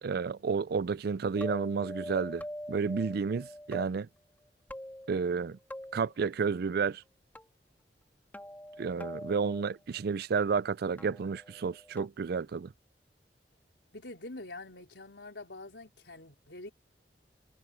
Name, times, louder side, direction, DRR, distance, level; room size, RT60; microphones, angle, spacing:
voice 1, 0.0-4.1 5.1-5.6 5.9-7.0 8.8-12.7, right 5 dB, 60° right, 0.4 m, -31 dB
sound 1, 1.4-3.9 4.7-5.4 5.7-6.1 7.4-7.5 8.3-9.6 11.0-12.1, equal, 10° left, 3.0 m, -43 dB
voice 2, 13.9-16.7, left 2 dB, 80° left, 4.0 m, -45 dB
head